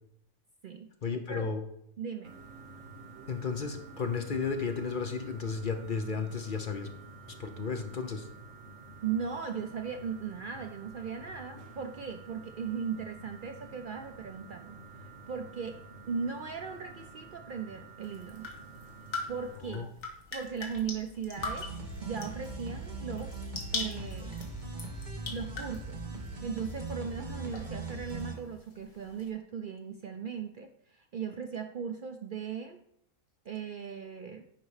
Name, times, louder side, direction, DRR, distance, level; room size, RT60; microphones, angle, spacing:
voice 1, 1.0-1.6 3.3-6.9 7.4-8.3 19.7-19.9, left 5 dB, 50° left, 5 dB, 0.7 m, -33 dB
voice 2, 2.0-2.3 9.0-14.8 15.0-15.8 16.1-18.5 19.3-19.9 20.3-21.7 22.0-23.5 23.7-24.4 25.3-32.8 33.5-34.4, right 6 dB, 70° right, 5 dB, 0.5 m, -38 dB
sound 1, 2.2-19.6, right 3 dB, 50° right, 1.3 m, -49 dB
sound 2, 18.0-29.3, left 3 dB, 65° left, 1.8 m, -43 dB
sound 3, 21.4-28.3, right 3 dB, 35° right, 1.4 m, -40 dB
10.0 x 4.1 x 4.8 m, 0.73 s
omnidirectional pair, 1.5 m